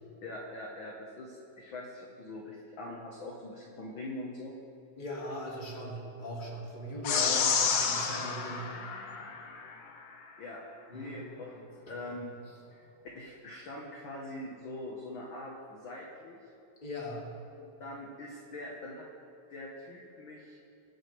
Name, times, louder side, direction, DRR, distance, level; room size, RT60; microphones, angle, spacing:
voice 1, 0.2-4.5 7.1-7.5 10.4-10.6 10.9-12.3 12.7-12.8 13.1-16.4 17.6-19.1 19.5-20.6, left 1 dB, 50° left, -2 dB, 1.7 m, -42 dB
voice 2, 5.0-8.7 10.9-11.2 11.9-12.2 16.8-17.3, equal, 15° left, -4 dB, 2.4 m, -40 dB
sound 1, 7.0-9.7, left 6 dB, 90° left, 2.5 m, -30 dB
24.5 x 8.9 x 3.4 m, 2.8 s
omnidirectional pair, 3.4 m